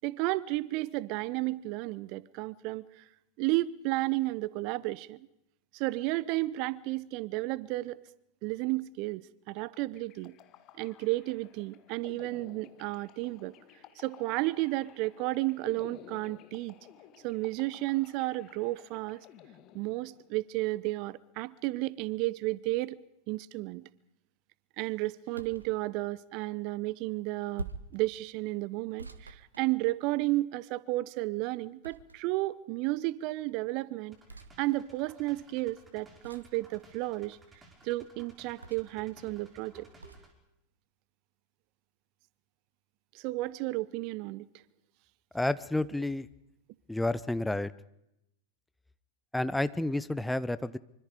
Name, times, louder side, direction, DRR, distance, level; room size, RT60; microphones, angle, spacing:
voice 1, 0.0-3.0 3.4-5.2 5.7-8.0 8.4-10.4 10.8-13.5 14.0-16.7 17.2-19.2 19.7-23.0 23.3-23.8 24.8-34.2 34.6-37.4 37.8-39.9 43.1-44.5, right 19 dB, 45° right, 0.8 m, -32 dB
sound 1, 9.9-20.4, left 10 dB, 35° left, 2.0 m, -54 dB
sound 2, 25.3-25.7 27.6-28.0 29.0-30.2 31.8-32.4 34.3-34.5 36.2-36.6 38.6-39.0 40.0-40.3, right 3 dB, 80° right, 1.7 m, -44 dB
sound 3, 34.1-40.3, right 2 dB, 15° right, 5.2 m, -57 dB
voice 2, 45.3-46.3 46.9-47.7 49.3-50.8, left 2 dB, 5° left, 0.8 m, -30 dB
25.5 x 25.0 x 5.1 m
figure-of-eight pair, 90°, 0 cm